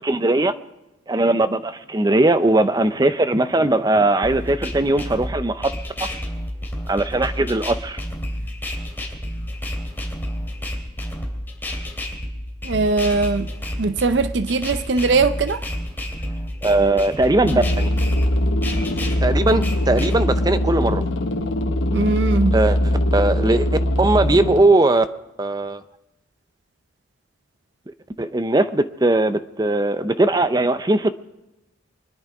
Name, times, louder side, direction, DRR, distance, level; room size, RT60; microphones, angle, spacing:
voice 1, 0.0-0.5 1.1-5.7 6.9-8.0 16.6-17.9 19.2-21.0 22.5-22.8 23.1-23.7 24.0-25.0 25.4-25.8 28.2-31.1, right 2 dB, 20° right, 0.6 m, -19 dB
sound 1, 4.2-20.2, equal, 10° left, 3.1 m, -30 dB
voice 2, 12.6-13.5 13.8-15.6 21.9-22.6, right 3 dB, 70° right, 0.6 m, -20 dB
sound 2, 17.4-24.6, left 1 dB, 85° left, 1.1 m, -21 dB
24.5 x 11.0 x 4.8 m
head